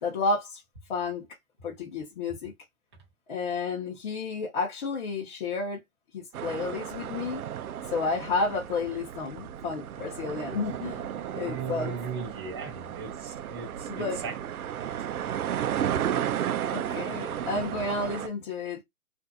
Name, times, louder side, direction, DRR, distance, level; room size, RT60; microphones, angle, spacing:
voice 1, 0.0-0.6 0.9-1.3 1.6-2.5 3.3-5.8 6.1-7.4 7.9-11.1 11.3-12.0 13.9-14.2 16.7-18.8, left 4 dB, 35° left, 0.8 m, -31 dB
sound 1, 6.3-18.3, right 10 dB, 75° right, 0.5 m, -33 dB
voice 2, 11.1-14.4 14.7-15.6 17.3-17.4, right 5 dB, 20° right, 0.5 m, -39 dB
2.6 x 2.4 x 2.3 m
hypercardioid pair, 150°, 44 cm